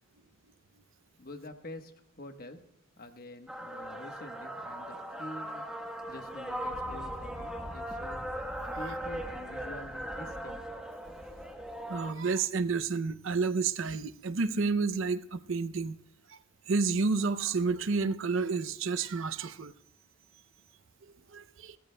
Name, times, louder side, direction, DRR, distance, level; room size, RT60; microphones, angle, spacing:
voice 1, 1.2-2.6 3.0-5.7 6.1-8.3 8.7-10.6, left 1 dB, 45° left, 1.2 m, -46 dB
sound 1, 3.5-12.1, equal, 5° right, 1.2 m, -39 dB
voice 2, 11.9-16.0 16.3-16.4 16.7-19.7 21.3-21.8, right 4 dB, 65° right, 0.6 m, -30 dB
30.0 x 13.5 x 2.2 m
head